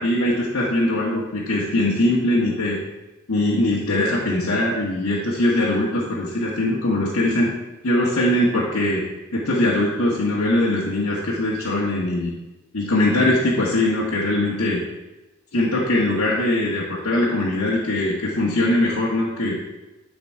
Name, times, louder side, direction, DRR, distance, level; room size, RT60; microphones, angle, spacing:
voice 1, 0.0-2.8 3.3-7.5 7.8-9.1 9.3-12.3 12.7-14.8 15.5-19.5, left 1 dB, 85° left, -7 dB, 1.6 m, -21 dB
10.0 x 5.2 x 4.8 m, 1.0 s
head